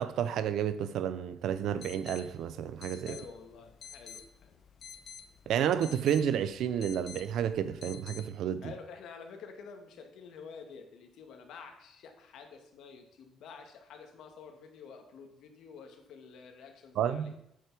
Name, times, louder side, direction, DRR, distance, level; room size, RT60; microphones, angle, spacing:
voice 1, 0.0-3.1 5.5-8.7 17.0-17.4, right 9 dB, 70° right, 0.7 m, -31 dB
sound 1, 1.5-8.2, left 7 dB, 45° left, 0.9 m, -50 dB
voice 2, 3.0-4.5 8.6-17.3, left 5 dB, 75° left, 1.8 m, -49 dB
8.4 x 7.5 x 6.1 m
cardioid pair, 155°, 0 cm